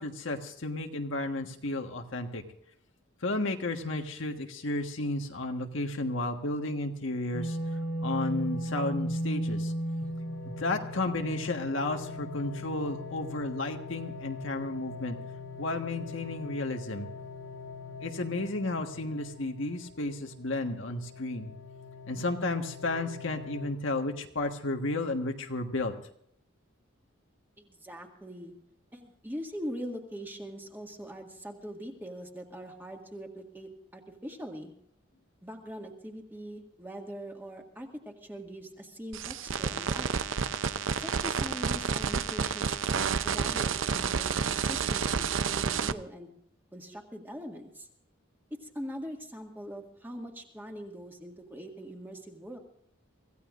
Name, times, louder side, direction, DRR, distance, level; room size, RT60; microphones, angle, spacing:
voice 1, 0.0-2.4 3.2-7.6 8.0-9.7 10.4-15.2 15.6-17.1 18.0-21.5 22.1-25.9, left 2 dB, 70° left, 4 dB, 1.5 m, -32 dB
sound 1, 7.3-23.7, left 1 dB, 85° left, 4.0 m, -38 dB
voice 2, 27.6-28.5 28.9-34.7 35.4-40.2 41.0-46.3 46.7-47.9 48.6-52.6, equal, 10° right, 1 dB, 1.9 m, -42 dB
sound 2, 39.1-45.9, right 6 dB, 70° right, 0.6 m, -30 dB
25.5 x 15.5 x 2.5 m, 0.69 s
head